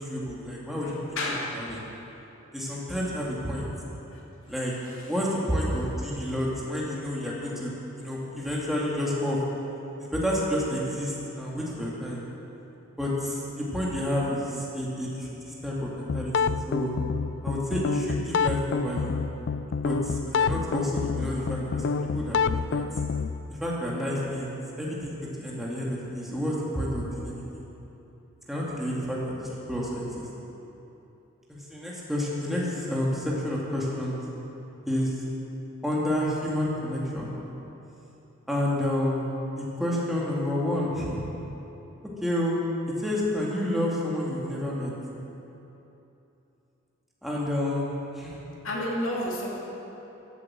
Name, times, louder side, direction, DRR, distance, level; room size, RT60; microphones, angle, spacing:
voice 1, 0.0-1.8 2.5-3.7 4.5-4.7 5.1-7.7 8.0-9.4 10.0-12.2 13.0-17.0 17.4-19.1 19.8-22.8 23.5-27.6 28.5-30.3 31.5-34.2 34.9-35.2 35.8-37.3 38.5-39.3 39.6-41.2 42.2-42.6 43.0-44.9 47.2-47.9 48.1-48.4, left 1 dB, ahead, -6 dB, 2.3 m, -29 dB
voice 2, 0.8-1.4 4.1-4.2 4.9-5.1 48.6-49.5, left 1 dB, 70° left, -4 dB, 2.4 m, -31 dB
sound 1, 16.1-23.4, left 5 dB, 55° left, 0.3 m, -28 dB
14.5 x 8.3 x 7.6 m, 3.0 s
head